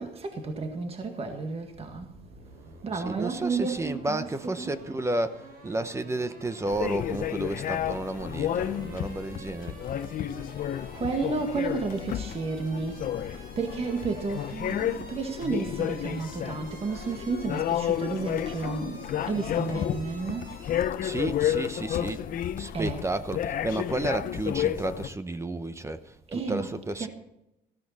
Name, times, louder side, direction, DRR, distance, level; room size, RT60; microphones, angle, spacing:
voice 1, 0.0-2.1 2.8-4.7 10.9-13.0 13.3-20.5 22.7-23.1 26.3-27.1, right 4 dB, 35° right, 1.8 m, -32 dB
sound 1, 1.7-20.9, right 2 dB, 60° right, 4.7 m, -50 dB
voice 2, 2.9-9.8 21.0-22.2 22.6-27.1, right 2 dB, 15° right, 0.8 m, -32 dB
sound 2, 6.7-25.1, left 10 dB, 55° left, 0.8 m, -31 dB
14.0 x 13.0 x 4.2 m
cardioid pair, 110°, 17 cm